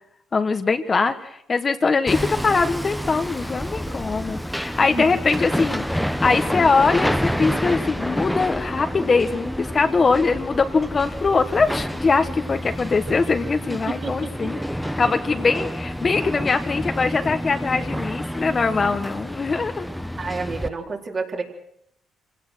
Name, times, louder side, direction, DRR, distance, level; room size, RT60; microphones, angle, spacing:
voice 1, 0.3-5.8 6.2-14.6 15.0-19.9, left 4 dB, 35° left, 8 dB, 1.4 m, -22 dB
Hammer, 2.1-20.7, equal, ahead, 1.0 m, -28 dB
voice 2, 13.9-14.5 20.2-21.4, right 4 dB, 40° right, 1 dB, 3.9 m, -29 dB
26.5 x 17.0 x 6.3 m, 0.72 s
cardioid pair, 90°, 0 cm